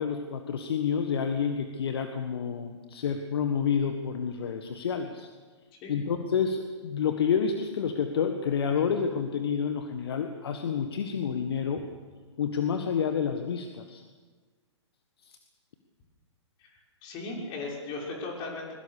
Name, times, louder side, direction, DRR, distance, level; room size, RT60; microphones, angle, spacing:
voice 1, 0.0-5.3 5.9-11.8 12.4-14.0 15.3-15.4, left 7 dB, 55° left, 6 dB, 1.6 m, -29 dB
voice 2, 17.0-18.7, left 3 dB, 30° left, -1 dB, 6.2 m, -37 dB
22.0 x 22.0 x 6.8 m, 1.4 s
figure-of-eight pair, 115°, 15 cm